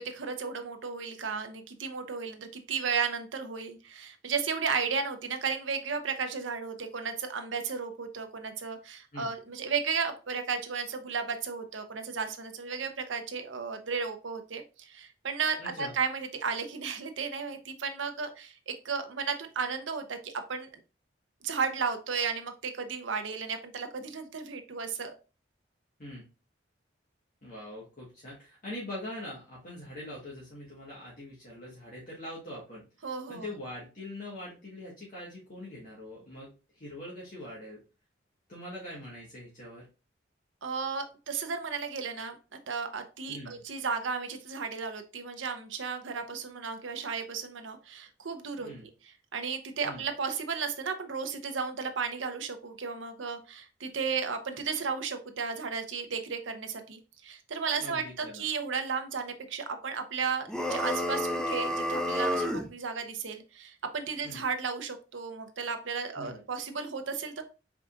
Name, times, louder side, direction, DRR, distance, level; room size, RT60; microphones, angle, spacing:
voice 1, 0.0-20.7 21.4-25.1 33.0-33.5 40.6-42.4 42.7-48.9 49.3-67.4, right 5 dB, 80° right, 7 dB, 0.7 m, -34 dB
voice 2, 15.6-16.0 26.0-26.2 27.4-32.8 33.3-37.8 38.5-39.8 43.3-43.6 48.6-48.8 49.8-50.0 57.8-58.4 64.2-64.4 66.2-66.4, left 1 dB, 45° left, -5 dB, 1.4 m, -43 dB
sound 1, 60.5-62.7, left 1 dB, 5° left, 0.4 m, -30 dB
4.7 x 3.7 x 2.4 m, 0.32 s
head